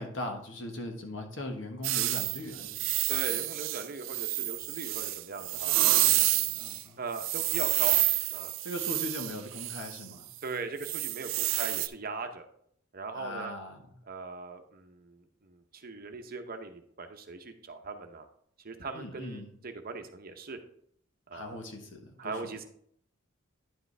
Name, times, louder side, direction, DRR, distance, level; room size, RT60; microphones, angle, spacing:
voice 1, 0.0-2.9 3.2-3.5 5.5-7.0 8.6-10.3 13.1-14.0 18.9-19.5 21.3-22.5, left 1 dB, 65° left, 3 dB, 1.3 m, -40 dB
sound 1, 1.8-6.8 7.2-10.0 10.8-11.9, right 16 dB, 75° right, 0.4 m, -29 dB
voice 2, 3.1-5.8 7.0-8.0 8.3-8.5 10.4-12.5 12.9-13.5 14.1-18.3 18.6-20.6 21.3-21.6 22.2-22.6, right 4 dB, 45° right, 6 dB, 0.8 m, -39 dB
10.0 x 5.0 x 3.3 m, 0.66 s
head